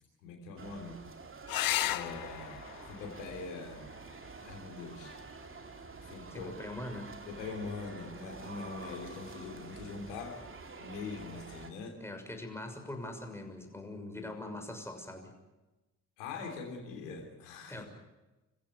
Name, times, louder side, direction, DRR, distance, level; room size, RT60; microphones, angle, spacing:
voice 1, 0.2-1.0 1.8-3.9 4.4-5.2 6.0-6.5 7.3-10.4 10.8-12.0 16.2-17.9, left 4 dB, 80° left, 3 dB, 3.4 m, -43 dB
sound 1, 0.6-11.7, right 4 dB, 30° right, 2.9 m, -48 dB
sound 2, 1.5-6.5 8.4-9.0 12.5-12.6 12.9-13.0, left 14 dB, 60° left, 1.1 m, -38 dB
voice 2, 6.3-7.1 12.0-15.3 17.7-17.9, left 1 dB, 5° left, 4 dB, 6.4 m, -42 dB
27.0 x 15.5 x 8.2 m, 1.0 s
hypercardioid pair, 50°, 39 cm